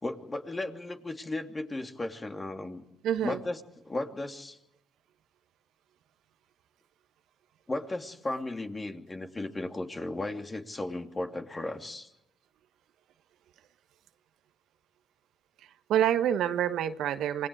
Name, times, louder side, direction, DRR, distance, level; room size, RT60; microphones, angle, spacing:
voice 1, 0.0-2.8 3.2-3.6 3.8-4.6 7.7-12.1, left 2 dB, 30° left, 5 dB, 2.8 m, -35 dB
voice 2, 3.0-3.4 15.9-17.5, right 10 dB, 75° right, 10 dB, 1.2 m, -27 dB
27.5 x 21.0 x 4.9 m, 0.83 s
supercardioid pair, 55°, 0 cm